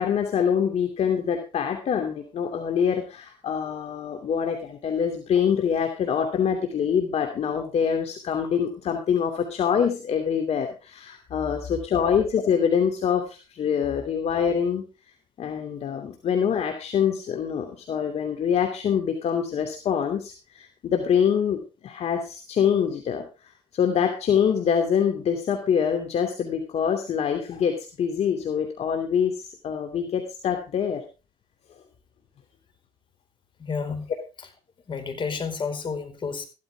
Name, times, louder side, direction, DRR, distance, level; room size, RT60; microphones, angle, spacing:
voice 1, 0.0-14.8 15.4-31.0, left 7 dB, 55° left, 4 dB, 2.7 m, -25 dB
voice 2, 33.6-34.1 34.9-36.5, left 5 dB, 40° left, 6 dB, 4.7 m, -30 dB
15.0 x 13.0 x 3.5 m, 0.32 s
cardioid pair, 95°, 13 cm